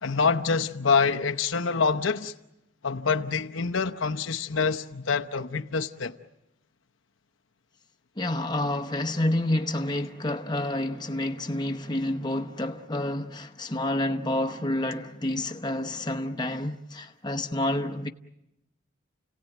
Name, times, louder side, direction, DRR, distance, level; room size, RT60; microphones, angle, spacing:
voice 1, 0.0-2.3 2.8-6.1, left 5 dB, 75° left, 0.9 m, -26 dB
voice 2, 8.2-18.1, left 1 dB, 20° left, 0.9 m, -29 dB
30.0 x 17.5 x 9.1 m
head